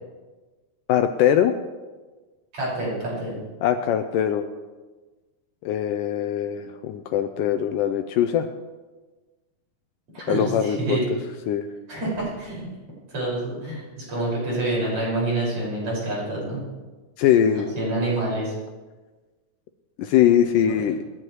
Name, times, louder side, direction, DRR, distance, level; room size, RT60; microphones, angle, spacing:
voice 1, 0.9-1.5 3.6-4.5 5.6-8.5 10.3-11.0 11.5-11.7 17.2-17.8 20.0-21.0, left 10 dB, 85° left, 8 dB, 1.9 m, -21 dB
voice 2, 2.5-3.4 10.1-11.1 11.9-12.7 13.1-16.6 17.6-18.5 20.7-20.8, right 2 dB, 40° right, -6 dB, 6.3 m, -27 dB
25.5 x 10.5 x 3.1 m, 1.3 s
omnidirectional pair, 4.3 m